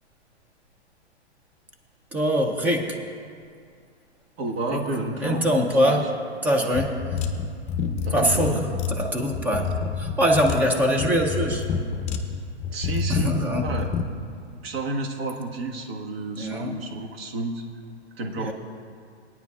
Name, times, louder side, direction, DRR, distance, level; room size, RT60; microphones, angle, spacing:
voice 1, 2.1-3.0 4.7-4.8 5.2-6.1 6.4-7.0 8.1-11.7 13.1-13.7 16.4-16.8 18.4-18.5, equal, 5° right, 2 dB, 0.3 m, -23 dB
voice 2, 4.4-6.1 8.0-8.6 12.7-13.9 14.5-17.6 18.2-18.5, right 2 dB, 60° right, 1 dB, 1.5 m, -31 dB
sound 1, 6.7-14.1, left 5 dB, 20° left, 0.7 m, -28 dB
20.0 x 9.5 x 2.3 m, 2.3 s
hypercardioid pair, 130°, 34 cm